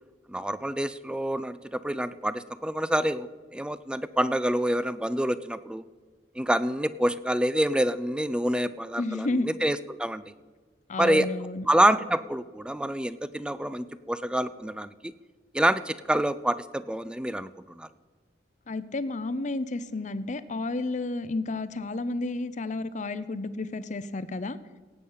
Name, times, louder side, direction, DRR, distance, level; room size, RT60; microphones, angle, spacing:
voice 1, 0.3-5.9 6.4-10.2 11.0-11.3 11.7-15.1 15.5-17.9, right 1 dB, 5° right, 15 dB, 0.4 m, -27 dB
voice 2, 9.0-9.5 10.9-11.7 18.7-24.6, left 2 dB, 45° left, 14 dB, 0.6 m, -31 dB
17.5 x 8.4 x 5.6 m, 1.4 s
head